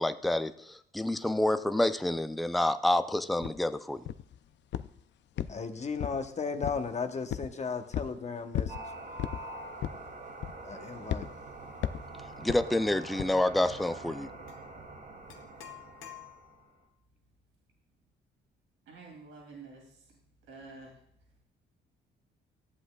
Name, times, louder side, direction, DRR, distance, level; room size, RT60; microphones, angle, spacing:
voice 1, 0.0-4.1 12.4-14.3, left 1 dB, ahead, 11 dB, 0.4 m, -28 dB
sound 1, 3.4-3.6 4.1-4.4 4.7-5.0 5.4-6.3 6.6-6.9 7.3-7.5 7.9-8.2 8.5-8.8 9.2-9.4 9.8-10.1 10.4-10.7 11.1-11.3 11.8-12.1 12.5-12.7 13.2-13.4, left 11 dB, 65° left, 0.4 m, -34 dB
voice 2, 5.5-8.7 10.6-11.3, left 5 dB, 35° left, 7 dB, 1.0 m, -35 dB
sound 2, 8.7-16.7, right 2 dB, 50° right, 2.1 m, -45 dB
sound 3, 14.5-14.6 15.3-16.8, left 10 dB, 90° left, 1.1 m, -49 dB
voice 3, 18.9-19.8 20.5-20.9, right 4 dB, 80° right, -1 dB, 2.6 m, -48 dB
14.0 x 7.9 x 2.3 m, 0.71 s
cardioid pair, 90°, 20 cm